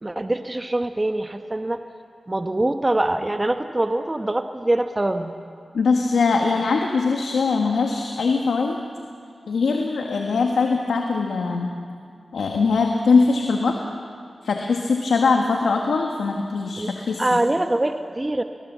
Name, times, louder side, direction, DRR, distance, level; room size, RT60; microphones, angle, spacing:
voice 1, 0.0-1.8 2.3-5.3 16.8-16.9 17.2-18.4, right 1 dB, 30° right, 7 dB, 1.2 m, -23 dB
voice 2, 5.7-8.8 9.5-11.7 12.3-13.7 14.4-17.4, left 4 dB, 90° left, 2 dB, 1.5 m, -21 dB
25.0 x 19.5 x 7.5 m, 2.2 s
cardioid pair, 40°, 0 cm